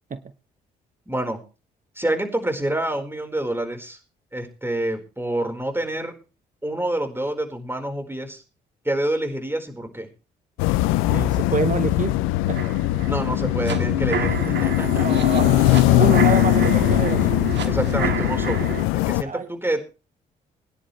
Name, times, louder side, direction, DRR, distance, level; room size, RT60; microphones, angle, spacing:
voice 1, 1.1-1.4 2.0-4.0 4.3-6.1 6.6-8.4 8.8-10.1 13.1-15.1 17.6-19.8, right 1 dB, 10° right, 5 dB, 4.6 m, -27 dB
sound 1, 10.6-19.2, left 18 dB, 75° left, 0.6 m, -20 dB
voice 2, 11.1-12.1 12.5-12.6 14.9-17.3 19.2-19.5, right 5 dB, 40° right, 11 dB, 1.1 m, -27 dB
sound 2, 12.5-18.9, right 7 dB, 55° right, 2.0 m, -29 dB
22.5 x 10.0 x 3.3 m, 0.33 s
hypercardioid pair, 50°, 21 cm